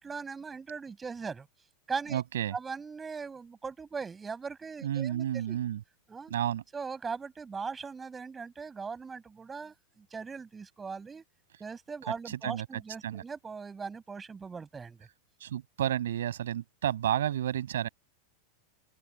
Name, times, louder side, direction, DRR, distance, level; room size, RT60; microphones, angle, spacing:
voice 1, 0.0-1.5 1.9-2.2 2.5-5.6 6.1-6.3 6.7-11.2 11.6-15.0, right 5 dB, 15° right, 6.9 m, -39 dB
voice 2, 2.1-2.6 4.8-5.8 6.3-6.6 12.3-13.2 15.4-17.9, right 11 dB, 60° right, 6.9 m, -31 dB
open air
figure-of-eight pair, 90°, 0 cm